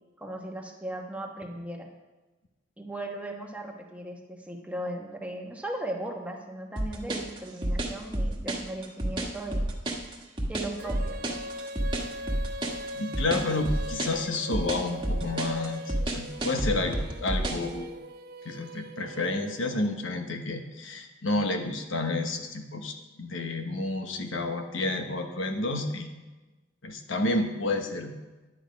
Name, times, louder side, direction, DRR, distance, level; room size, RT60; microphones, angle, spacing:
voice 1, 0.2-1.9 2.8-9.7 10.5-11.4, right 1 dB, 5° right, 1 dB, 1.1 m, -37 dB
sound 1, 6.8-17.7, right 1 dB, 25° right, 1.4 m, -30 dB
Female singing, 10.8-19.9, equal, 50° right, 0.6 m, -41 dB
voice 2, 13.0-17.9 18.4-26.1 26.8-28.1, left 2 dB, 75° left, 5 dB, 1.2 m, -30 dB
11.0 x 8.8 x 5.1 m, 1.1 s
head